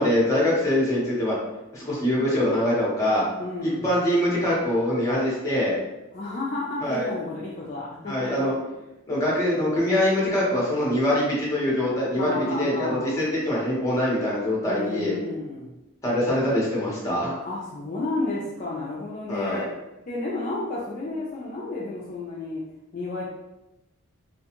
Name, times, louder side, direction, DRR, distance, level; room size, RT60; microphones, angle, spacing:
voice 1, 0.0-1.3 1.7-3.2 3.6-5.8 6.8-7.1 8.1-8.5 9.1-15.1 16.0-17.4 19.3-19.6, left 1 dB, 15° left, -6 dB, 0.8 m, -23 dB
voice 2, 3.4-3.9 6.1-8.5 12.1-13.2 14.6-15.7 17.4-19.7 20.1-22.6 22.9-23.3, left 2 dB, 40° left, -6 dB, 0.4 m, -32 dB
2.4 x 2.3 x 2.8 m, 0.95 s
head